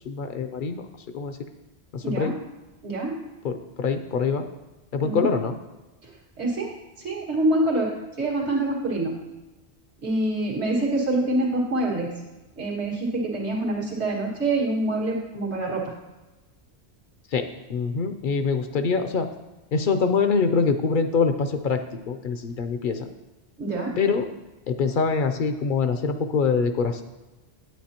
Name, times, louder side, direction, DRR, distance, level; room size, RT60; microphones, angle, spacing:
voice 1, 0.1-0.9 1.1-1.4 1.9-2.3 3.4-4.5 4.9-5.5 17.3-17.4 17.7-19.3 19.7-23.1 24.0-24.3 24.7-27.0, left 5 dB, 60° left, 7 dB, 0.7 m, -24 dB
voice 2, 2.0-2.3 2.8-3.1 5.0-5.3 6.0-7.9 8.2-9.1 10.0-12.1 12.6-15.9 23.6-23.9, right 2 dB, 80° right, -4 dB, 2.2 m, -26 dB
9.3 x 8.9 x 2.9 m, 1.1 s
omnidirectional pair, 1.1 m